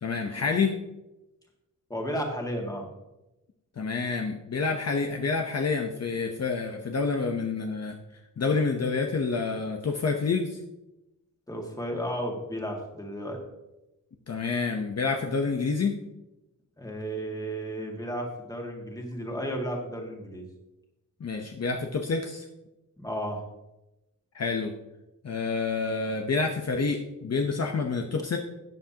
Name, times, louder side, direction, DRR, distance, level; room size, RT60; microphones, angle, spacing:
voice 1, 0.0-0.7 3.8-7.9 8.4-10.6 14.3-15.9 21.2-22.4 24.3-24.7 25.2-28.4, left 4 dB, 50° left, 3 dB, 0.9 m, -28 dB
voice 2, 1.9-2.9 11.5-13.4 16.8-20.5 23.0-23.4, equal, 10° left, 1 dB, 1.9 m, -33 dB
13.5 x 9.2 x 2.9 m, 0.96 s
wide cardioid pair, 155°, 33 cm